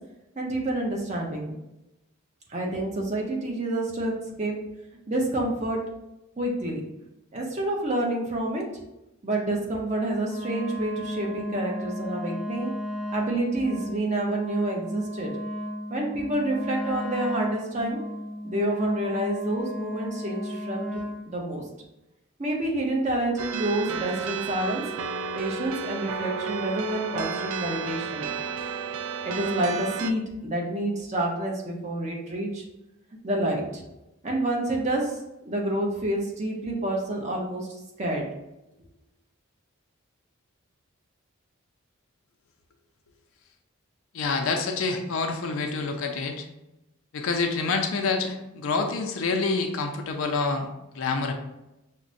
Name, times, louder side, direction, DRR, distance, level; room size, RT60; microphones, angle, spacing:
voice 1, 0.4-1.5 2.5-4.1 4.4-4.6 5.1-5.8 6.4-6.8 7.3-8.6 9.2-12.7 13.1-15.3 15.9-18.0 18.4-21.6 22.4-24.8 25.4-28.3 29.2-32.6 33.2-33.8 34.2-38.2, right 1 dB, 35° right, -1 dB, 0.7 m, -28 dB
Wind instrument woodwind instrument, 10.2-21.3, left 1 dB, 5° left, 0.3 m, -34 dB
sound 1, 23.4-30.1, right 5 dB, 80° right, 0.3 m, -32 dB
voice 2, 44.1-46.5 47.1-51.3, left 4 dB, 70° left, 4 dB, 0.4 m, -27 dB
5.8 x 2.1 x 2.6 m, 0.93 s
head